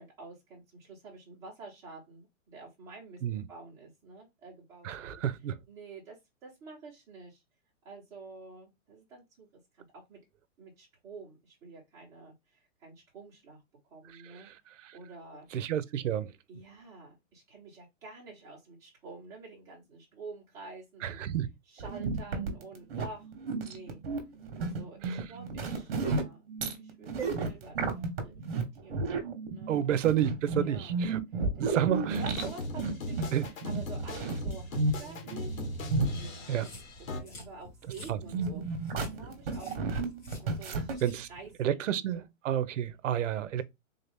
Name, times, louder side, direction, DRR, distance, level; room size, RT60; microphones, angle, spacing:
voice 1, 0.0-5.2 5.7-7.4 7.8-9.5 9.7-10.2 10.6-13.6 13.9-14.5 14.9-15.5 16.5-21.2 21.6-24.0 24.6-26.5 26.8-27.8 28.2-29.1 29.5-29.8 30.5-31.0 31.3-35.6 36.1-36.7 37.0-40.0 40.4-42.3, right 3 dB, 10° right, 1.0 m, -49 dB
voice 2, 4.8-5.5 15.5-16.3 21.0-21.5 25.1-25.2 29.7-31.2 31.6-32.2 33.3-33.5 36.5-36.7 38.1-38.2 41.0-41.3 41.6-43.6, right 10 dB, 70° right, 0.6 m, -30 dB
sound 1, 21.8-36.3 38.2-41.0, right 3 dB, 45° right, 1.2 m, -33 dB
sound 2, 32.1-37.2, left 1 dB, 85° left, 1.4 m, -38 dB
sound 3, 36.4-41.5, left 1 dB, 30° left, 2.0 m, -51 dB
3.6 x 2.7 x 3.4 m
hypercardioid pair, 175°, 39 cm